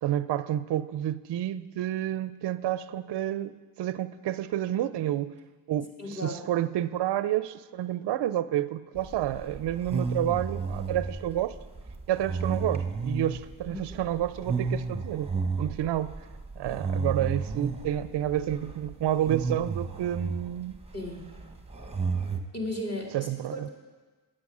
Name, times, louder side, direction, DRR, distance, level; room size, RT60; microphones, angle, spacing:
voice 1, 0.0-5.3 5.7-11.5 12.1-15.3 15.6-16.2 16.6-20.8 23.1-23.7, right 12 dB, 60° right, 15 dB, 0.5 m, -29 dB
voice 2, 6.0-6.4 13.7-13.8 20.9-21.2 22.5-23.7, left 1 dB, 30° left, 0 dB, 2.2 m, -35 dB
sound 1, 8.9-22.4, right 4 dB, 15° right, 1.0 m, -33 dB
9.6 x 7.6 x 6.1 m, 1.3 s
cardioid pair, 55°, 47 cm